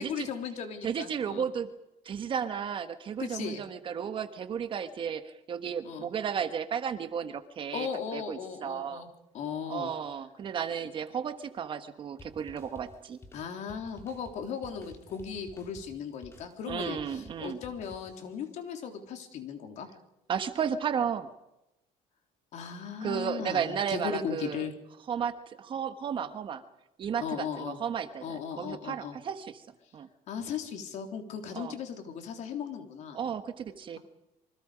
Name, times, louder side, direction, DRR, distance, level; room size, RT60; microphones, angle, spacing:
voice 1, 0.0-1.5 3.2-3.6 5.8-6.1 7.7-9.1 9.3-9.9 13.3-19.9 22.5-24.7 27.2-27.8 28.2-29.2 30.3-33.2, left 7 dB, 55° left, 5 dB, 3.7 m, -37 dB
voice 2, 0.8-1.7 2.0-9.0 9.7-13.2 16.7-17.6 20.3-21.3 23.0-24.7 25.1-26.6 27.0-29.6 29.9-30.1 31.5-31.8 33.1-34.0, right 7 dB, 35° right, 10 dB, 1.3 m, -33 dB
sound 1, 12.2-18.6, left 1 dB, 15° left, 2.6 m, -53 dB
27.5 x 24.0 x 5.1 m, 0.91 s
cardioid pair, 160°, 15 cm